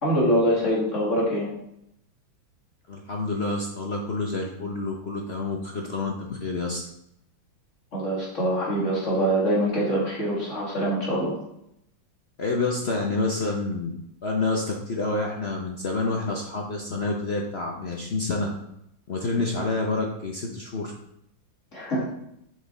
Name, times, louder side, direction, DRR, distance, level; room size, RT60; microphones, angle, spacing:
voice 1, 0.0-1.5 7.9-11.3 21.7-22.1, equal, 40° left, -5 dB, 2.6 m, -24 dB
voice 2, 2.9-6.8 12.4-13.9 14.2-18.5 19.1-20.9, left 3 dB, 55° left, 0 dB, 0.7 m, -28 dB
6.2 x 5.8 x 4.1 m, 0.77 s
omnidirectional pair, 2.1 m